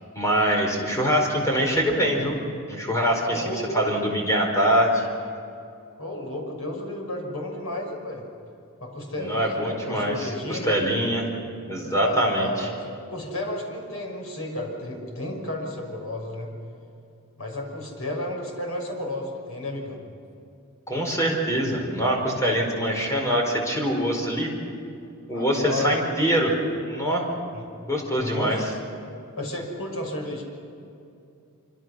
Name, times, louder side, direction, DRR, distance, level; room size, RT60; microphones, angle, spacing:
voice 1, 0.1-2.4 2.7-3.4 3.7-5.0 9.2-11.2 11.7-12.7 20.9-24.5 25.3-26.5 26.9-27.3 27.9-28.6, equal, 15° left, 1 dB, 4.6 m, -24 dB
voice 2, 3.3-3.9 6.0-8.2 8.8-10.9 12.0-16.5 17.4-20.0 25.3-26.1 27.5-27.8 28.0-28.7 29.4-30.4, left 1 dB, 75° left, 1 dB, 6.1 m, -32 dB
26.0 x 25.5 x 6.3 m, 2.6 s
head